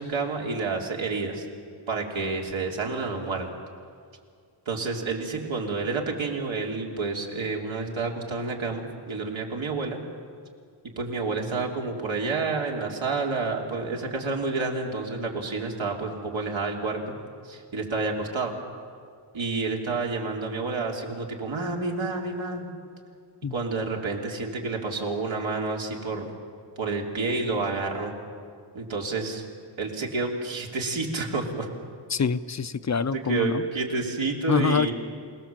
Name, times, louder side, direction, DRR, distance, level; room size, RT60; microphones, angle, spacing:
voice 1, 0.0-1.5 1.9-3.5 4.6-10.0 11.0-17.0 17.4-18.5 19.3-22.7 23.5-26.3 26.8-28.1 28.7-29.4 29.8-31.7 33.1-34.9, right 3 dB, 80° right, 0 dB, 3.3 m, -29 dB
voice 2, 32.1-33.6 34.5-34.9, left 5 dB, 35° left, 14 dB, 0.6 m, -25 dB
28.5 x 19.0 x 7.5 m, 2.2 s
wide cardioid pair, 165°, 46 cm